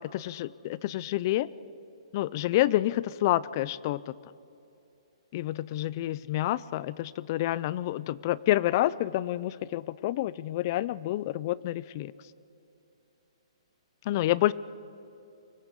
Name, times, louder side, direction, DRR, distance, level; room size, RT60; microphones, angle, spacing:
voice 1, 0.0-1.5 2.1-4.1 5.3-12.1 14.1-14.5, left 15 dB, 35° left, 20 dB, 0.4 m, -28 dB
24.0 x 16.0 x 8.2 m, 2.8 s
hypercardioid pair, 160°, 3 cm